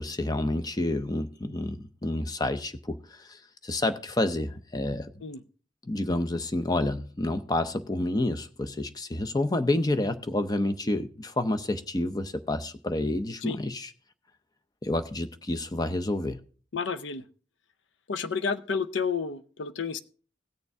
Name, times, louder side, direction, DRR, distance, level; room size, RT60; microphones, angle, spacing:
voice 1, 0.0-5.2 5.8-13.9 14.8-16.4, left 1 dB, 20° left, 0.6 m, -29 dB
voice 2, 16.7-17.2 18.1-20.0, left 5 dB, 75° left, 0.6 m, -30 dB
17.0 x 6.7 x 3.5 m
head